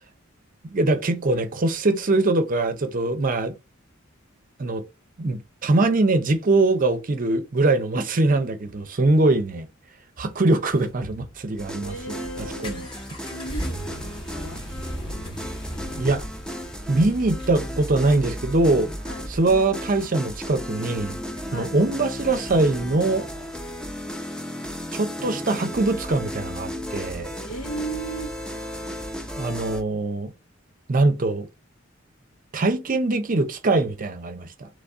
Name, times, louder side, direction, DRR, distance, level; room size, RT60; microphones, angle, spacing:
voice 1, 0.6-3.5 4.6-4.8 5.2-9.7 10.2-12.2 12.6-12.8 16.0-16.2 16.9-18.9 19.3-21.2 21.5-23.3 24.9-27.3 29.4-30.3 30.9-31.5 32.5-34.7, right 2 dB, 40° right, 0.6 m, -22 dB
sound 1, 10.4-24.2, equal, 25° left, 1.1 m, -38 dB
sound 2, 11.6-29.8, equal, 5° left, 0.5 m, -35 dB
voice 2, 11.8-13.0 13.3-14.6 19.0-19.3 21.5-21.8 27.3-28.3, right 3 dB, 85° left, 1.7 m, -36 dB
4.0 x 3.2 x 3.5 m
head